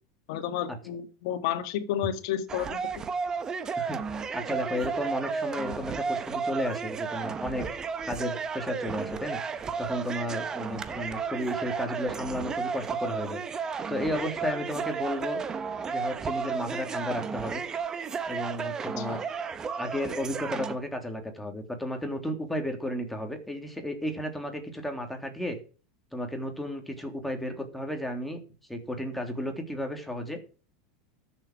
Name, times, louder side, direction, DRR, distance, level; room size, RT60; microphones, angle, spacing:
voice 1, 0.3-3.1 19.0-19.2, left 10 dB, 70° left, 7 dB, 2.0 m, -31 dB
sound 1, 2.5-20.7, right 5 dB, 25° right, 1.3 m, -33 dB
voice 2, 3.8-7.8 8.1-15.4 15.9-17.6 18.3-19.2 19.8-25.6 26.1-28.4 28.7-30.4, left 1 dB, 5° left, 4 dB, 3.3 m, -33 dB
13.5 x 7.5 x 6.3 m, 0.37 s
supercardioid pair, 110°, 3 cm